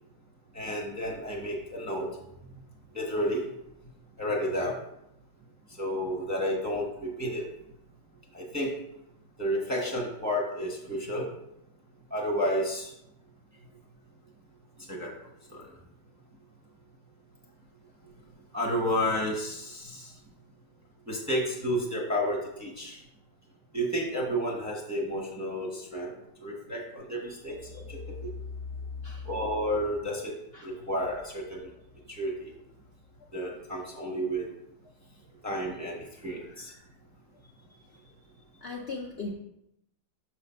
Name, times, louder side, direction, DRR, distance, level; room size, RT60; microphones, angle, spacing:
voice 1, 0.5-2.1 2.9-3.4 4.2-4.8 5.8-7.4 8.3-8.7 9.4-11.3 12.1-12.9 14.9-15.1 15.5-15.7 18.5-20.1 21.1-23.0 23.7-26.1 26.4-28.3 29.2-30.3 30.6-31.7 32.1-32.5 33.3-34.5 35.4-36.7, equal, 15° right, -2 dB, 0.6 m, -31 dB
voice 2, 27.2-27.8 28.4-28.5 28.8-29.3 30.5-30.8 33.2-33.3 36.4-36.9 37.7-38.1 38.6-39.3, left 4 dB, 80° left, 0 dB, 0.5 m, -40 dB
6.4 x 3.3 x 5.4 m, 0.82 s
omnidirectional pair, 1.8 m